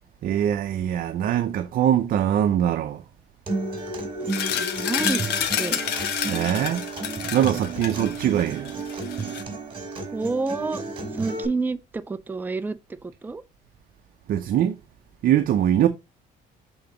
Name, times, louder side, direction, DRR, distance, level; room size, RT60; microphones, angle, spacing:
voice 1, 0.2-3.0 6.3-6.8 7.3-8.7 14.3-14.8 15.2-15.9, right 10 dB, 55° right, 0.7 m, -22 dB
Acoustic guitar, 3.5-11.4, right 3 dB, 30° right, 2.7 m, -32 dB
voice 2, 4.2-5.2 5.6-5.8 10.1-10.9 11.1-13.4, right 3 dB, 10° right, 0.5 m, -29 dB
sound 1, 4.3-9.4, left 9 dB, 85° left, 1.1 m, -29 dB
7.9 x 3.9 x 3.8 m
cardioid pair, 110°, 17 cm